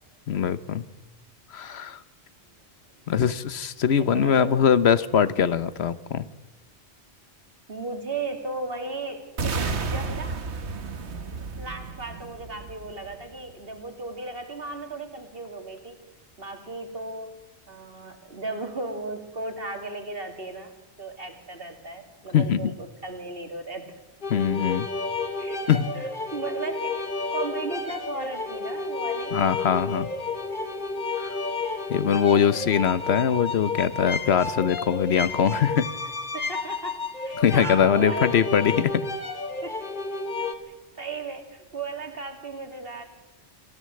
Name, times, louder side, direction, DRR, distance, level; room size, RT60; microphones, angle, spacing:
voice 1, 0.3-0.8 1.5-2.0 3.1-6.3 22.3-22.7 24.3-24.9 25.7-25.9 29.3-30.1 31.2-31.3 31.9-35.9 37.4-38.9, left 8 dB, 75° left, 15 dB, 1.1 m, -22 dB
voice 2, 4.0-4.6 7.7-10.4 11.6-16.0 16.4-17.3 17.7-23.9 25.2-25.6 25.9-27.0 27.3-29.4 32.3-32.4 36.3-38.3 39.6-39.8 40.7-43.0, right 3 dB, 60° right, 6 dB, 2.7 m, -36 dB
sound 1, 9.4-13.4, right 4 dB, 85° right, 1.6 m, -32 dB
sound 2, 24.2-40.5, left 3 dB, 50° left, 1.7 m, -31 dB
26.0 x 14.5 x 7.7 m, 1.1 s
omnidirectional pair, 1.1 m